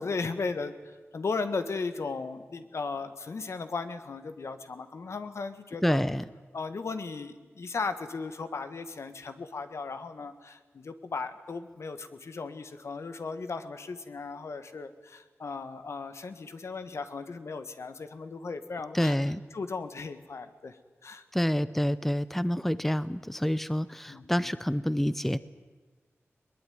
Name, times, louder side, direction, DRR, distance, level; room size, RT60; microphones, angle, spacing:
voice 1, 0.0-6.0 6.5-19.2 19.5-20.8 21.0-21.2 24.1-24.5, left 4 dB, 75° left, 10 dB, 1.6 m, -36 dB
voice 2, 5.8-6.2 18.9-19.4 21.3-25.4, equal, 5° left, 16 dB, 0.7 m, -27 dB
22.0 x 20.0 x 9.4 m, 1.3 s
wide cardioid pair, 80°, 5 cm